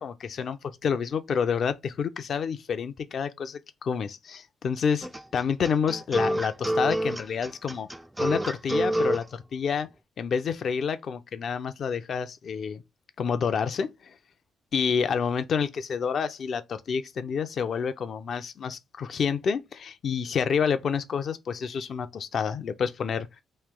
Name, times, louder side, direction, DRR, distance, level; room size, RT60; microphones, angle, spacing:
voice 1, 0.0-5.1 5.3-7.9 8.2-9.9 10.2-12.8 13.2-14.1 14.7-23.3, left 6 dB, 55° left, 0.5 m, -28 dB
sound 1, 5.0-9.2, right 1 dB, 10° right, 0.4 m, -27 dB
3.2 x 2.7 x 3.7 m
cardioid pair, 90°, 0 cm